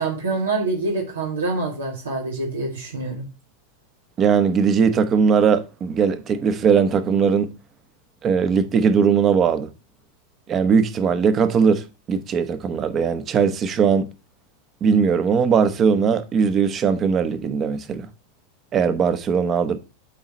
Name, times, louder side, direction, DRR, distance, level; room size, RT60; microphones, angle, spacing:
voice 1, 0.0-3.3, right 3 dB, 90° right, 2.0 m, -26 dB
voice 2, 4.2-7.5 8.2-9.7 10.5-14.1 14.8-18.1 18.7-19.8, right 6 dB, 35° right, 1.1 m, -19 dB
8.5 x 4.1 x 5.0 m
hypercardioid pair, 105°, 0 cm